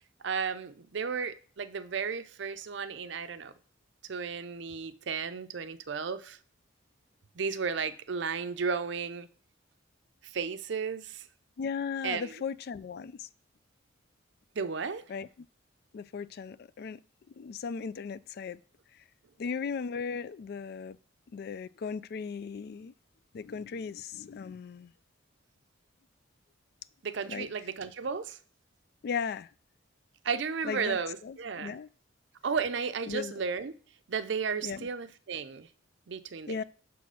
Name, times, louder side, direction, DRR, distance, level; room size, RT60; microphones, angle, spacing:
voice 1, 0.2-3.5 4.1-6.4 7.4-9.3 10.2-11.3 12.0-12.3 14.6-15.0 27.0-28.4 30.2-31.8 32.4-33.7 34.1-35.7 36.1-36.6, right 5 dB, 60° right, 0.5 m, -34 dB
voice 2, 11.6-13.3 15.1-15.5 15.9-17.0 17.4-18.6 19.4-21.0 21.3-22.9 23.3-24.9 27.3-27.5 29.0-29.5 30.6-31.9 33.1-33.3 34.6-34.9 36.5-36.6, left 6 dB, 50° left, 0.3 m, -37 dB
5.7 x 4.1 x 6.2 m
head